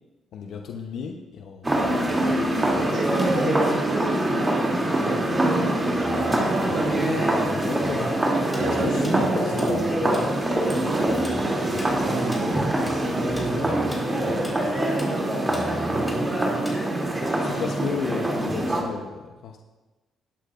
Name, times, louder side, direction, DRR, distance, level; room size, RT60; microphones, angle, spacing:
voice 1, 0.3-3.2 7.6-8.2 8.6-9.9 13.5-13.6 17.4-19.6, left 6 dB, 75° left, 2 dB, 0.8 m, -34 dB
sound 1, 1.6-18.8, right 1 dB, 20° right, 2.7 m, -24 dB
voice 2, 2.8-7.2 8.3-9.3 9.6-12.8 13.1-16.6, right 3 dB, 60° right, 0 dB, 1.5 m, -32 dB
sound 2, 6.0-16.1, left 2 dB, 50° left, 2.2 m, -42 dB
Tools, 8.5-10.3 10.5-10.8 11.1-17.2, left 1 dB, 5° left, 4.2 m, -41 dB
20.5 x 8.6 x 2.5 m, 1.2 s
cardioid pair, 90°, 0 cm